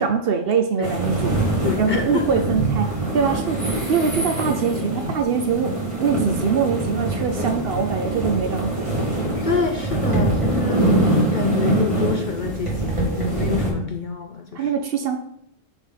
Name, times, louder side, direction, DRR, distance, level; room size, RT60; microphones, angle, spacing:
voice 1, 0.0-1.5 1.8-8.9 14.5-15.2, right 6 dB, 60° right, 6 dB, 0.7 m, -23 dB
sound 1, 0.8-13.7, right 2 dB, 25° right, 1.8 m, -24 dB
voice 2, 1.6-2.2 9.4-14.7, left 6 dB, 55° left, 3 dB, 0.6 m, -26 dB
5.9 x 3.7 x 5.5 m, 0.75 s
omnidirectional pair, 1.3 m